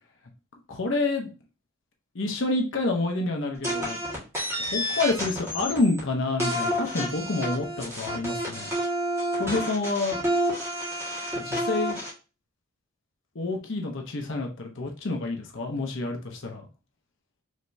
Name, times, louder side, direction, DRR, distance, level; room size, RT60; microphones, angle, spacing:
voice 1, 0.7-1.3 2.1-4.0 4.6-8.7 9.4-10.2 11.4-12.0 13.3-16.7, left 2 dB, 60° left, 2 dB, 0.8 m, -28 dB
sound 1, 3.6-6.0 6.4-12.1, equal, 15° right, 1.8 m, -29 dB
5.0 x 3.2 x 2.7 m, 0.33 s
head